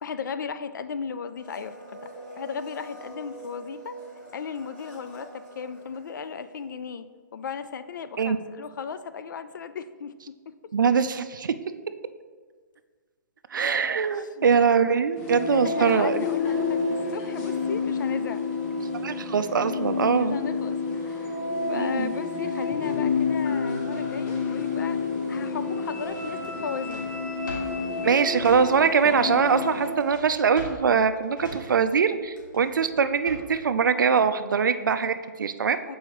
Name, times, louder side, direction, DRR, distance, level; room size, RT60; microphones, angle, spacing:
voice 1, 0.0-4.0 4.3-7.1 7.3-10.7 13.9-14.5 15.3-18.4 20.1-21.4 21.7-25.0 25.3-27.1 35.9-36.0, left 6 dB, 75° left, 12 dB, 0.4 m, -36 dB
Domestic sounds home sounds, 1.4-6.6 6.9-7.0, right 2 dB, 10° left, 1.3 m, -44 dB
voice 2, 10.7-11.6 13.5-16.2 19.0-20.4 21.7-22.2 28.0-35.8, right 6 dB, 80° right, 11 dB, 0.4 m, -23 dB
sound 1, 15.1-29.9, left 4 dB, 35° left, 1.1 m, -29 dB
Drawer open or close, 26.1-29.2 29.4-33.7, left 1 dB, 90° left, 1.6 m, -43 dB
7.0 x 4.6 x 3.0 m, 1.5 s
hypercardioid pair, 140°, 10 cm